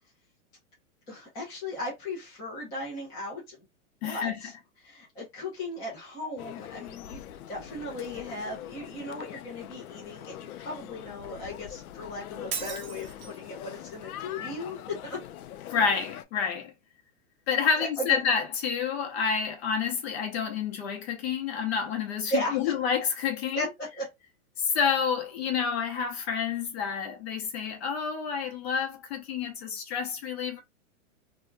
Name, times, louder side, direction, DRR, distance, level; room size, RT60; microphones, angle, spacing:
voice 1, 1.1-3.6 4.0-4.5 4.8-7.2 7.5-15.2 17.8-18.2 22.3-22.6 23.5-23.7 24.0-24.1, left 1 dB, 10° left, 0.5 m, -36 dB
voice 2, 4.0-4.4 15.7-16.7 17.5-23.7 24.6-30.6, left 6 dB, 45° left, 0.9 m, -29 dB
sound 1, 6.4-16.2, left 11 dB, 75° left, 0.5 m, -43 dB
Shatter, 12.5-13.5, right 7 dB, 40° right, 0.5 m, -37 dB
2.8 x 2.3 x 2.2 m
hypercardioid pair, 160°, 43 cm